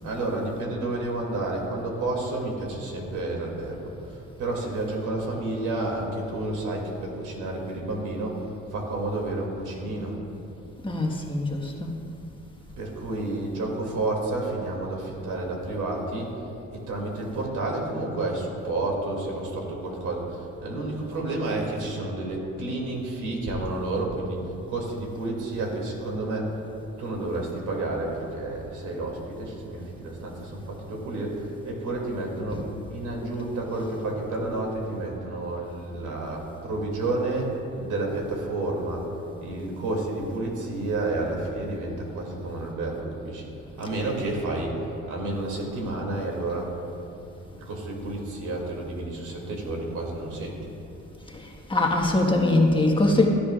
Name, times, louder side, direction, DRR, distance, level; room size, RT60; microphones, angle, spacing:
voice 1, 0.0-10.2 12.8-16.3 16.7-26.6 27.0-39.1 39.4-43.5 43.8-44.8 45.1-50.6, right 2 dB, 80° right, -1 dB, 2.6 m, -30 dB
voice 2, 10.8-11.9 51.3-51.4 51.7-53.3, left 2 dB, 15° left, 0 dB, 1.5 m, -22 dB
17.0 x 13.0 x 2.4 m, 2.8 s
cardioid pair, 90°, 30 cm